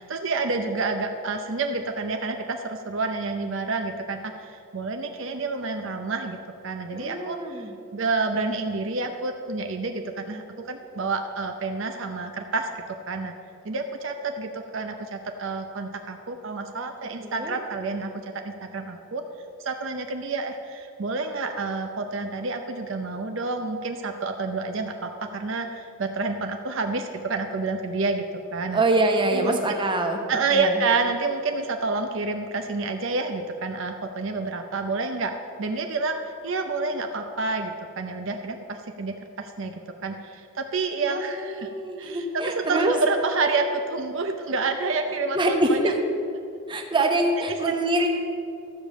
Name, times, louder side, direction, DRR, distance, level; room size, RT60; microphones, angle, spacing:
voice 1, 0.0-6.4 6.6-13.3 13.6-18.1 18.4-19.2 19.6-28.2 28.5-28.8 29.3-29.8 30.3-41.7 42.0-45.9 47.5-47.7, right 3 dB, 60° right, 5 dB, 0.6 m, -29 dB
voice 2, 6.9-7.7 17.2-17.6 28.7-30.2 30.5-30.8 41.1-43.0 45.3-46.0 46.7-48.1, right 2 dB, 20° right, 3 dB, 0.9 m, -25 dB
13.5 x 5.1 x 7.3 m, 2.6 s
head